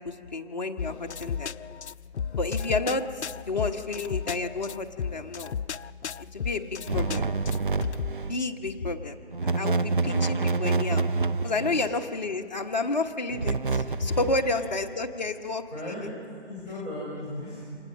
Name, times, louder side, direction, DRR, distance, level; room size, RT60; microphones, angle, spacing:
voice 1, 0.0-1.5 2.3-5.6 6.2-7.3 8.2-9.2 9.4-11.1 11.4-15.6, left 3 dB, 40° left, 3 dB, 1.1 m, -30 dB
sound 1, 0.8-8.1, left 7 dB, 75° left, 0.5 m, -34 dB
sound 2, 6.9-8.4 9.3-11.9 13.3-14.5, right 3 dB, 50° right, 0.5 m, -27 dB
voice 2, 14.3-14.8 15.7-16.0 16.5-17.7, left 1 dB, 15° right, -11 dB, 5.6 m, -37 dB
27.0 x 19.0 x 6.4 m, 2.4 s
figure-of-eight pair, 170°, 34 cm